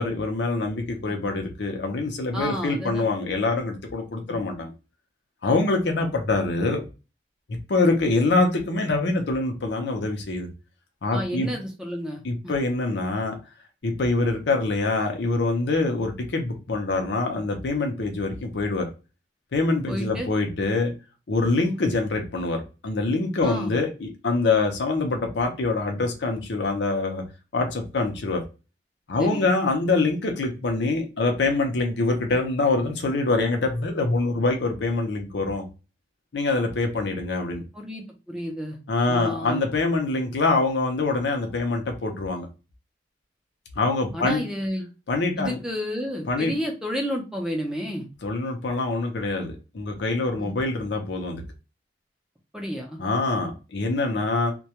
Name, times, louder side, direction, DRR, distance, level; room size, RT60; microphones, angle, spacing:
voice 1, 0.0-4.7 5.4-6.8 7.7-10.5 11.0-11.5 12.2-13.3 13.8-18.9 19.5-20.9 21.3-27.2 27.5-28.4 29.1-35.6 36.3-37.6 38.9-42.5 43.8-44.4 45.1-45.6 46.3-46.5 48.2-51.4 53.0-54.5, left 3 dB, 70° left, 3 dB, 0.6 m, -25 dB
voice 2, 2.3-3.0 4.3-4.4 11.1-12.5 19.9-20.3 23.4-23.7 29.2-29.5 37.7-38.8 39.1-39.6 44.1-44.9 45.4-48.1 50.4-50.5 52.5-53.0, equal, 5° right, 1 dB, 0.5 m, -31 dB
2.2 x 2.2 x 2.8 m, 0.30 s
head